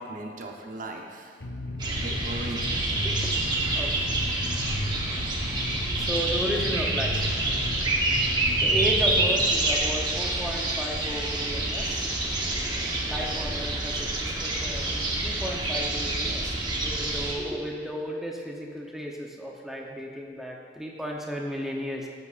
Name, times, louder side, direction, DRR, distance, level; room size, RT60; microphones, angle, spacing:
voice 1, 0.0-1.3 2.0-2.9, right 1 dB, 50° right, 2 dB, 0.8 m, -38 dB
sound 1, 1.4-9.4, left 1 dB, 70° left, 0.9 m, -34 dB
sound 2, 1.8-17.3, right 2 dB, 25° right, 1.1 m, -27 dB
voice 2, 5.9-7.2 8.6-12.1 13.1-22.1, equal, ahead, -1 dB, 0.8 m, -34 dB
13.0 x 8.2 x 2.5 m, 2.3 s
head